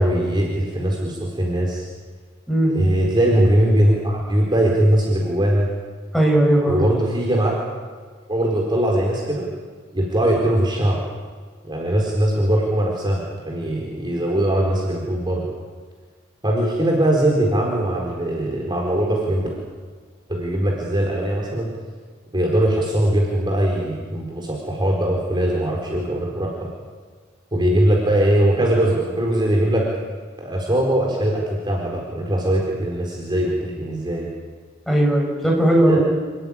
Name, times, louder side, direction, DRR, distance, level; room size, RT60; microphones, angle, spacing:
voice 1, 0.0-1.8 2.7-5.7 6.7-7.5 8.3-9.5 9.9-11.0 11.6-15.4 16.4-19.5 20.3-21.7 22.3-26.5 27.5-29.8 30.4-34.3 35.9-36.0, right 1 dB, 25° right, -2 dB, 4.4 m, -20 dB
voice 2, 6.1-6.9 34.9-36.0, right 1 dB, ahead, -1 dB, 7.3 m, -17 dB
28.5 x 14.0 x 10.0 m, 1.5 s
head